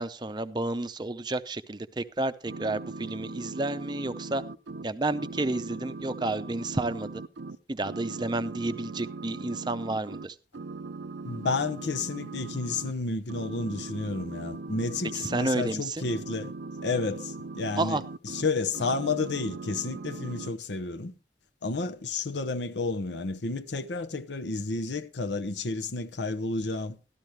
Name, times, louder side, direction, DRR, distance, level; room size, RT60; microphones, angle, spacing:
voice 1, 0.0-4.4 4.8-7.1 7.7-10.4 15.1-16.1 17.8-18.0, right 2 dB, 25° right, 0.5 m, -31 dB
sound 1, 2.5-7.6 7.8-10.3 10.5-12.9 13.3-18.5 18.7-20.5, right 3 dB, 85° right, 0.6 m, -40 dB
voice 2, 11.2-16.5 16.8-18.0 18.3-21.1 21.6-27.0, left 3 dB, 85° left, 0.9 m, -31 dB
13.0 x 12.0 x 3.2 m
head